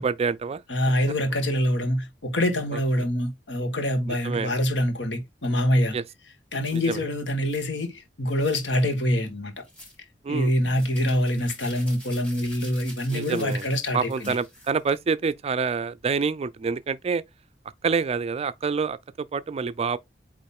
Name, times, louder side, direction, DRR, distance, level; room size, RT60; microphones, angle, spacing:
voice 1, 0.0-0.6 4.2-4.5 5.9-6.0 6.7-7.0 10.2-10.5 13.1-13.7 13.9-17.2 17.8-20.0, right 5 dB, 35° right, 0.4 m, -27 dB
voice 2, 0.7-5.9 6.5-9.5 10.3-14.4, left 1 dB, 75° left, 1.5 m, -25 dB
sound 1, 6.6-7.0 7.5-7.7 8.3-8.8 9.6-10.0 10.7-15.0, left 1 dB, 10° left, 3.7 m, -46 dB
8.4 x 3.1 x 3.7 m
head